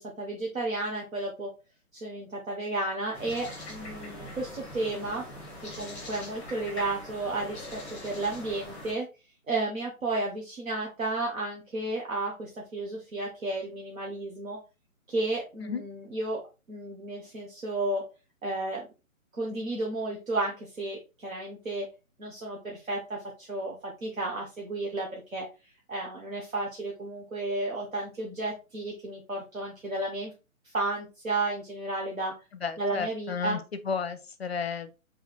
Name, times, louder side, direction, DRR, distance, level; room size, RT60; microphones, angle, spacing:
voice 1, 0.0-1.5 1.9-5.2 5.6-9.1 9.5-14.6 15.1-16.4 16.7-18.0 18.4-18.8 19.3-21.9 22.2-25.5 25.9-30.3 30.6-32.3 32.8-33.6, right 2 dB, 65° right, 1.1 m, -33 dB
sound 1, 3.1-8.9, left 1 dB, 5° left, 0.8 m, -42 dB
voice 2, 32.6-34.9, left 6 dB, 45° left, 0.5 m, -33 dB
4.7 x 3.2 x 2.3 m
figure-of-eight pair, 135°, 43 cm